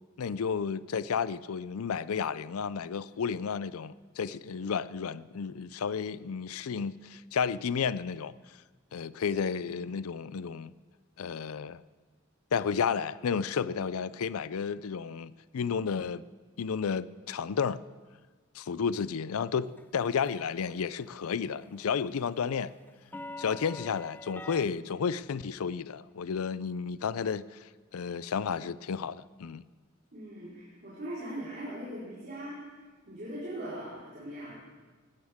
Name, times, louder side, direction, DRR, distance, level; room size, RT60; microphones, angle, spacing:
voice 1, 0.2-8.3 8.9-10.7 11.2-11.8 12.5-16.2 16.6-17.8 18.5-22.7 23.4-27.6 27.9-29.6, left 6 dB, 90° left, 0.5 m, -32 dB
sound 1, 19.8-20.7 21.0-21.3 21.6-24.6, left 2 dB, 10° left, 0.5 m, -44 dB
voice 2, 30.1-32.8 33.1-34.6, right 1 dB, 50° right, 4.3 m, -40 dB
19.0 x 16.0 x 3.6 m
head